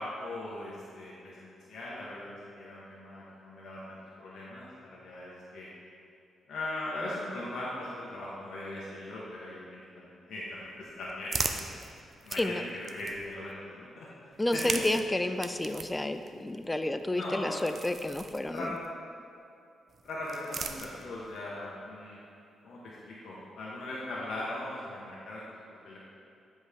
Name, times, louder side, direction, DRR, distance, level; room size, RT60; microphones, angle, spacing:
voice 1, 0.0-5.7 6.5-11.6 12.2-12.6 12.8-14.1 14.5-14.6 17.1-17.6 18.5-18.7 20.0-22.2 22.6-26.0, left 1 dB, 75° left, -7 dB, 1.3 m, -40 dB
sound 1, 10.5-13.5 14.3-18.9 19.9-21.4, right 4 dB, 45° right, 0.5 m, -40 dB
voice 2, 14.4-18.7, left 1 dB, 15° left, 9 dB, 0.4 m, -30 dB
9.6 x 5.3 x 3.6 m, 2.7 s
cardioid pair, 90°, 0 cm